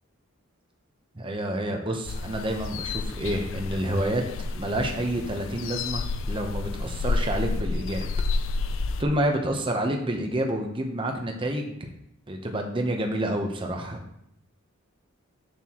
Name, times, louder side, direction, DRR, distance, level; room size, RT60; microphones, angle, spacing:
voice 1, 1.2-4.2 4.5-8.1 9.0-11.8 12.3-14.0, right 1 dB, 25° right, 2 dB, 0.8 m, -28 dB
sound 1, 2.1-9.0, left 3 dB, 65° left, 0.4 m, -30 dB
7.2 x 6.7 x 3.0 m, 0.73 s
head